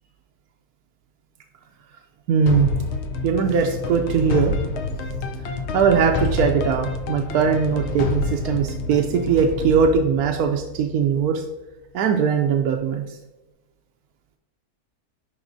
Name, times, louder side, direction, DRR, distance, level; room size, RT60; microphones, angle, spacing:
voice 1, 2.3-2.7 3.2-4.5 5.4-11.4 11.9-13.0, right 6 dB, 80° right, 3 dB, 1.1 m, -20 dB
sound 1, 2.5-11.3, left 3 dB, 65° left, 0.7 m, -28 dB
11.0 x 3.9 x 2.6 m, 1.1 s
omnidirectional pair, 1.6 m